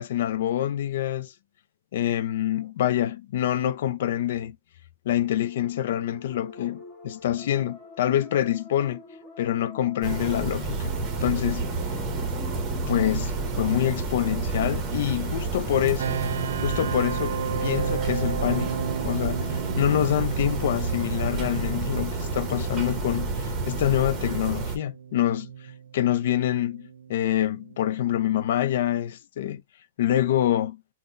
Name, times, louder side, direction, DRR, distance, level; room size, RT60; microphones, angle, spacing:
voice 1, 0.0-1.3 1.9-4.6 5.1-6.8 7.0-9.0 9.4-10.9 11.2-11.7 12.9-16.2 16.6-25.5 25.9-29.6 30.0-30.8, left 11 dB, 60° left, 0.3 m, -26 dB
sound 1, 5.2-19.8, left 3 dB, 20° left, 0.8 m, -46 dB
sound 2, 10.0-24.8, right 3 dB, 20° right, 0.7 m, -30 dB
sound 3, 16.0-28.8, right 8 dB, 70° right, 0.3 m, -35 dB
3.6 x 2.1 x 2.4 m
hypercardioid pair, 145°, 0 cm